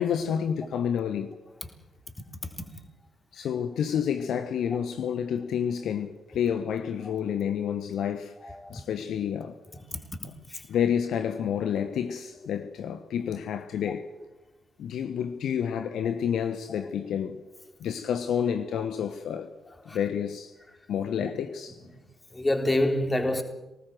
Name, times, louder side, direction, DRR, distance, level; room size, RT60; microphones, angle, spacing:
voice 1, 0.0-1.3 3.3-9.6 10.7-14.1 14.8-17.4 17.8-19.5 19.9-20.5 20.9-21.8, left 8 dB, 55° left, 1.1 m, -29 dB
voice 2, 8.4-8.8 9.9-10.2 10.5-10.6 13.9-14.0 16.8-16.9 18.8-18.9 19.9-20.0 21.0-21.3 22.3-23.4, left 1 dB, 20° left, 3.9 m, -28 dB
24.0 x 19.0 x 7.8 m
figure-of-eight pair, 45°, 0 cm